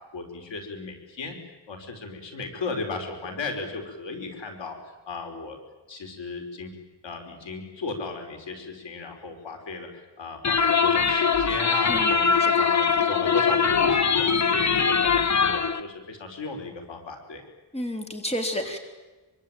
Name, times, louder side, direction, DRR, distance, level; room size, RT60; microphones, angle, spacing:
voice 1, 0.0-1.4 1.7-5.6 5.9-6.7 7.0-17.4, left 3 dB, 85° left, 4 dB, 5.4 m, -36 dB
sound 1, 10.4-15.8, left 6 dB, 40° left, 1.4 m, -22 dB
voice 2, 17.7-18.8, left 1 dB, 15° left, 4 dB, 3.7 m, -31 dB
26.0 x 24.5 x 9.2 m, 1.2 s
wide cardioid pair, 140°, 43 cm